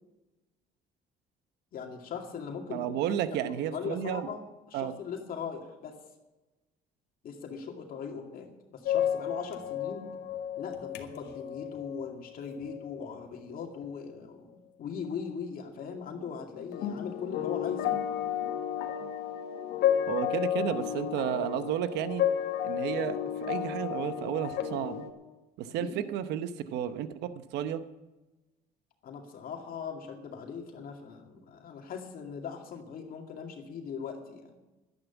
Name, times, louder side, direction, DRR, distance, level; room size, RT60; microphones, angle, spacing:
voice 1, 1.7-3.0 3.4-4.4 4.7-6.0 7.2-10.1 10.6-17.9 25.6-26.1 29.0-34.5, left 6 dB, 60° left, 3 dB, 2.2 m, -40 dB
voice 2, 2.7-4.3 4.7-4.9 20.1-22.2 22.6-25.1 25.6-27.8, right 10 dB, 85° right, 11 dB, 0.9 m, -32 dB
sound 1, 8.9-13.1 13.6-13.9 16.7-25.1, left 10 dB, 80° left, 1.6 m, -32 dB
12.0 x 11.0 x 7.1 m, 1.1 s
cardioid pair, 110°, 17 cm